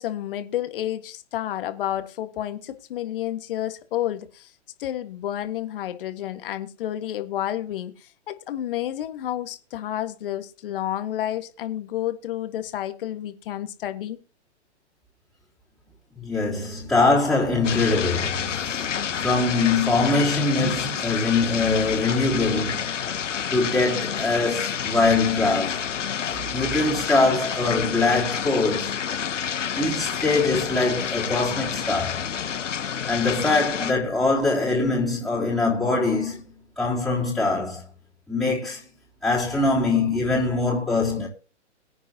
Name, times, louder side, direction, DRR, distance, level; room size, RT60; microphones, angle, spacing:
voice 1, 0.0-4.5 4.8-14.2, left 12 dB, 50° left, 1.6 m, -30 dB
voice 2, 16.2-22.9 23.5-25.9 26.5-29.0 29.8-32.3 33.1-36.4 36.8-37.8 38.3-38.9 39.2-41.3, left 3 dB, ahead, 3.3 m, -23 dB
sound 1, 17.6-33.9, left 8 dB, 90° left, 0.9 m, -29 dB
22.0 x 9.0 x 2.9 m
hypercardioid pair, 135°, 36 cm